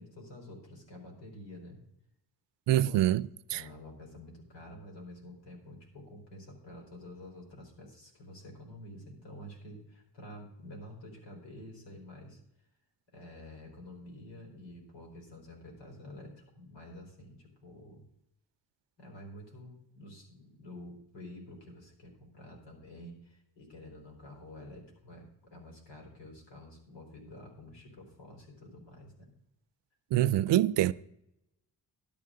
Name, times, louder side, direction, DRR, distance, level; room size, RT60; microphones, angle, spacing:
voice 1, 0.0-1.8 2.7-3.1 3.5-12.4 13.1-18.0 19.0-29.3, left 1 dB, 85° left, 4.3 m, -49 dB
voice 2, 2.7-3.6 30.1-30.9, right 13 dB, 80° right, 0.5 m, -25 dB
12.0 x 12.0 x 3.8 m
cardioid pair, 70°, 42 cm